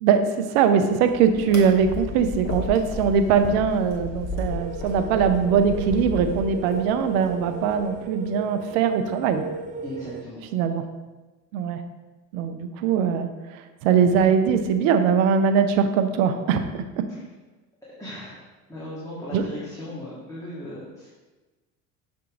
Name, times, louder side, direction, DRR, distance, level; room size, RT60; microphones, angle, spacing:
voice 1, 0.0-9.4 10.5-10.8 11.5-11.8 12.3-13.3 13.8-17.0 19.3-19.4, right 6 dB, 70° right, 8 dB, 0.7 m, -21 dB
sound 1, 1.0-8.0, left 2 dB, 40° left, 1.7 m, -34 dB
sound 2, 4.5-10.2, right 7 dB, 20° right, 0.4 m, -36 dB
voice 2, 9.8-10.4 18.0-21.1, left 1 dB, 10° left, -9 dB, 1.8 m, -37 dB
6.9 x 3.7 x 3.7 m, 1.2 s
hypercardioid pair, 75°, 42 cm